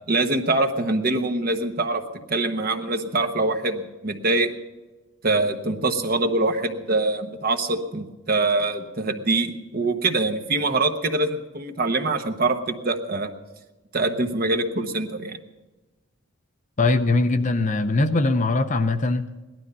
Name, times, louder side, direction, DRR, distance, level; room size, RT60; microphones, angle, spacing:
voice 1, 0.1-2.0 2.3-4.5 5.2-13.3 13.9-15.4, right 2 dB, 45° right, 6 dB, 1.1 m, -24 dB
voice 2, 16.8-19.3, left 2 dB, 35° left, 9 dB, 0.7 m, -21 dB
17.5 x 12.0 x 5.4 m, 1.2 s
head